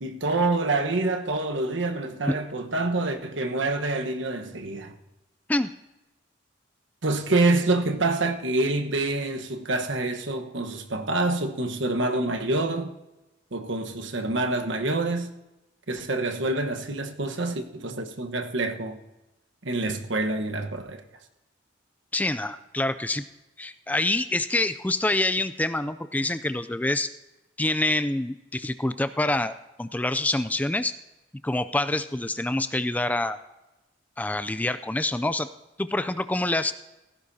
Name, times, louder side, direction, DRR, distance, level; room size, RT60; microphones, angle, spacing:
voice 1, 0.0-4.9 7.0-12.9 13.5-15.3 15.9-19.0 19.6-21.0, right 2 dB, 75° right, 1.2 m, -26 dB
voice 2, 22.1-23.2 23.6-27.1 27.6-31.0 31.4-33.4 34.2-35.5 35.8-36.7, left 2 dB, 10° left, 0.4 m, -26 dB
17.0 x 15.0 x 2.8 m
head